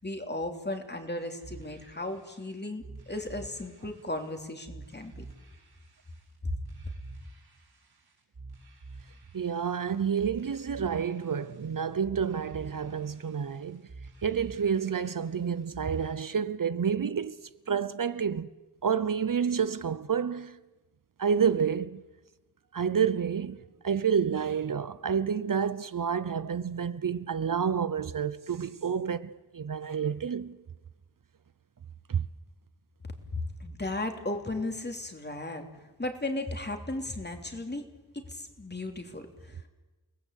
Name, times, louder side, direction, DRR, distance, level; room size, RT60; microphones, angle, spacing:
voice 1, 0.0-5.2 6.4-6.5 6.8-6.9 33.3-35.7 36.0-37.9 38.1-39.7, left 2 dB, 25° left, 3.1 m, -35 dB
sound 1, 1.4-16.1, right 3 dB, 75° right, 6.7 m, -49 dB
voice 2, 9.3-13.8 14.2-17.4 17.7-18.5 18.8-20.6 21.2-22.0 22.7-23.6 23.8-30.6 32.1-32.2, right 7 dB, 55° right, 0.8 m, -29 dB
29.5 x 19.0 x 8.3 m
wide cardioid pair, 105°, 38 cm